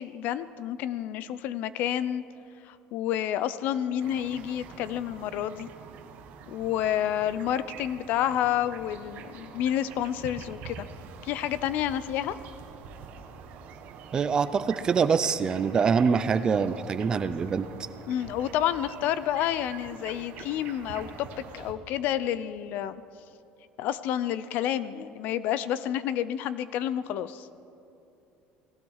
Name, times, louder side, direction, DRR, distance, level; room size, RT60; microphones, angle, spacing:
voice 1, 0.0-2.2 2.7-5.7 6.5-10.9 11.2-12.4 18.1-23.0 23.8-27.5, left 11 dB, 50° left, 15 dB, 0.6 m, -29 dB
sound 1, 4.0-21.7, right 6 dB, 50° right, 1.6 m, -45 dB
voice 2, 14.1-17.7, right 6 dB, 20° right, 12 dB, 0.5 m, -24 dB
29.0 x 18.5 x 4.8 m, 2.8 s
cardioid pair, 175°, 4 cm